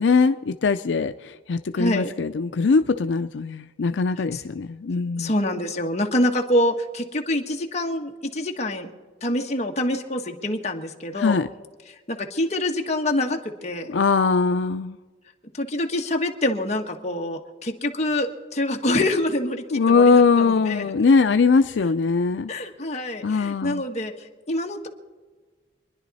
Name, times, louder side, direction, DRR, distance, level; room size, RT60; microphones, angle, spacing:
voice 1, 0.0-5.3 11.2-11.5 13.9-15.0 19.7-22.5 23.2-23.8, left 4 dB, 85° left, 9 dB, 0.5 m, -21 dB
voice 2, 1.8-2.1 4.2-4.4 5.2-8.9 9.2-11.4 12.1-13.9 15.6-20.9 22.5-24.1 24.5-24.9, left 1 dB, 40° left, 2 dB, 1.4 m, -26 dB
26.5 x 10.5 x 4.1 m, 1.4 s
head